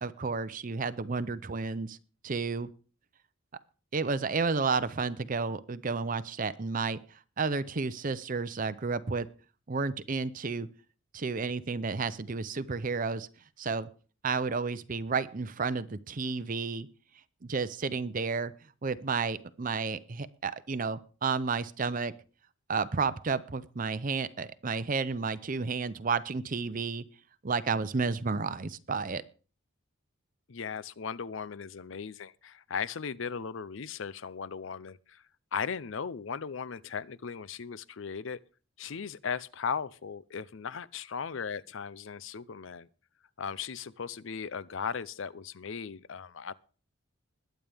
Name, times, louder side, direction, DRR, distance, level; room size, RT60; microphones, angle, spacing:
voice 1, 0.0-2.0 2.2-2.7 3.9-7.0 7.4-9.3 9.7-10.7 11.1-13.3 13.6-13.9 14.2-16.9 17.4-18.5 18.8-22.1 22.7-27.0 27.4-29.2, right 4 dB, 40° right, 0.6 m, -31 dB
voice 2, 30.5-35.2 35.5-38.4 38.8-42.9 43.4-46.5, left 6 dB, 60° left, 0.5 m, -37 dB
21.0 x 9.1 x 3.5 m
head